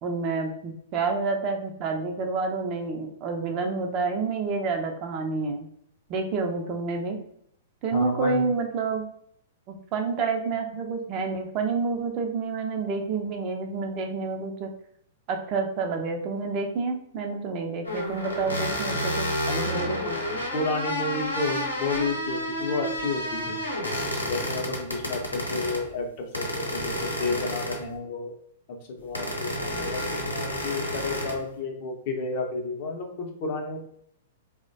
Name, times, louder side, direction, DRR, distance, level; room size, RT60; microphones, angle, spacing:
voice 1, 0.0-5.7 6.1-7.2 7.8-9.1 9.7-14.7 15.3-19.3 19.7-20.0 24.0-24.2, right 4 dB, 35° right, 3 dB, 0.5 m, -29 dB
voice 2, 7.9-8.4 19.5-20.2 20.5-23.6 24.3-28.3 28.7-33.8, left 3 dB, 45° left, 2 dB, 0.6 m, -31 dB
sound 1, 17.8-25.8 26.3-28.0 29.1-31.4, equal, 90° left, 0.7 m, -30 dB
3.0 x 2.1 x 2.6 m, 0.67 s
figure-of-eight pair, 105°, 0 cm